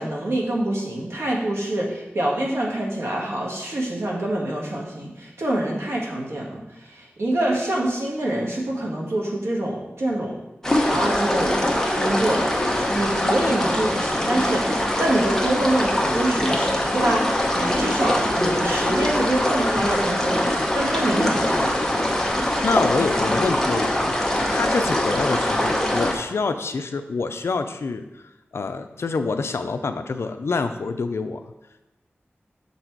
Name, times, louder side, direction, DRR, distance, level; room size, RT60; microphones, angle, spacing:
voice 1, 0.0-10.4 10.9-11.6 11.9-21.8, right 1 dB, 85° right, -2 dB, 1.4 m, -25 dB
sound 1, 10.6-26.2, left 1 dB, 10° left, 0.9 m, -23 dB
voice 2, 22.2-24.2 24.5-28.0 28.5-31.4, left 4 dB, 80° left, 8 dB, 0.5 m, -26 dB
6.8 x 4.1 x 4.5 m, 0.98 s
wide cardioid pair, 90°, 4 cm